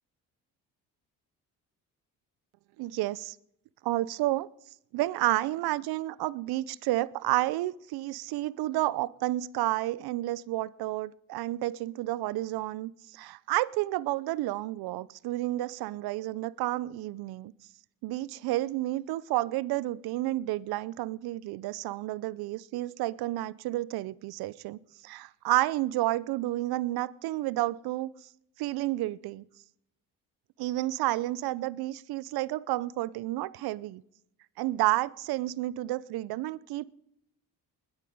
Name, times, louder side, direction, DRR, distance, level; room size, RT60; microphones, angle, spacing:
voice 1, 2.8-3.4 3.8-4.5 4.9-17.5 18.0-24.8 25.0-28.1 28.6-29.4 30.6-34.0 34.6-36.9, right 17 dB, 75° right, 0.6 m, -30 dB
20.5 x 8.2 x 5.3 m
supercardioid pair, 65°, 37 cm